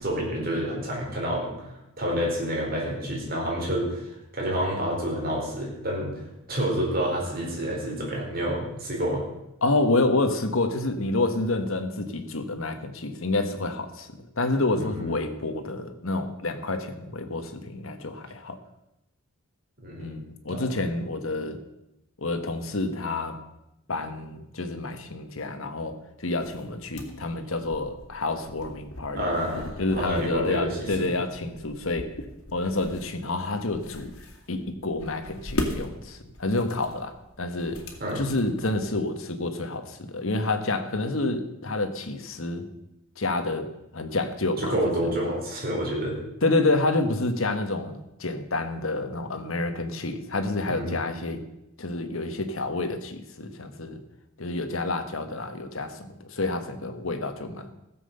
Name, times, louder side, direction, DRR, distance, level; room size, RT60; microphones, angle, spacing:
voice 1, 0.0-4.1 4.3-9.2 14.8-15.1 19.8-20.1 20.5-20.6 29.1-31.2 38.0-38.2 44.6-46.2 50.7-51.0, right 1 dB, 45° right, -2 dB, 4.4 m, -29 dB
voice 2, 9.6-14.1 14.4-18.6 20.0-21.6 22.2-23.4 23.9-29.2 29.8-32.1 32.5-34.1 34.5-37.8 38.1-42.6 43.2-45.1 46.4-51.4 51.8-54.0 54.4-57.7, left 2 dB, 70° left, 8 dB, 1.4 m, -28 dB
sound 1, 26.3-39.0, left 1 dB, 90° left, 2.2 m, -39 dB
15.5 x 7.7 x 6.6 m, 0.90 s
head